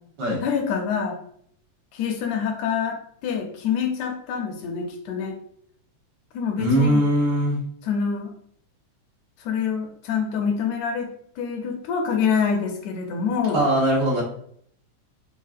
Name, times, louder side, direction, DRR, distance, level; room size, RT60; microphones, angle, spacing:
voice 1, 0.4-1.2 1.9-5.4 6.3-7.0 7.8-8.3 9.4-11.1 11.4-13.7, left 6 dB, 80° left, 3 dB, 1.8 m, -26 dB
voice 2, 6.6-7.6 13.5-14.2, right 1 dB, 55° right, -5 dB, 1.4 m, -20 dB
4.8 x 3.1 x 2.4 m, 0.64 s
omnidirectional pair, 3.4 m